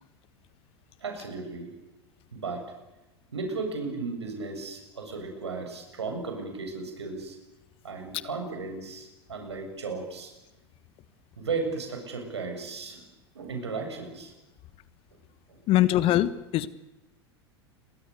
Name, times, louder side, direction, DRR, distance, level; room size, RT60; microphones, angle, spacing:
voice 1, 1.0-1.7 2.3-2.6 3.3-7.4 7.8-10.3 11.4-13.0 13.3-14.3 15.5-15.6, right 4 dB, 80° right, 4 dB, 7.4 m, -35 dB
voice 2, 15.7-16.7, left 14 dB, 40° left, 16 dB, 1.4 m, -22 dB
29.5 x 23.5 x 6.8 m, 1.0 s
figure-of-eight pair, 85°, 14 cm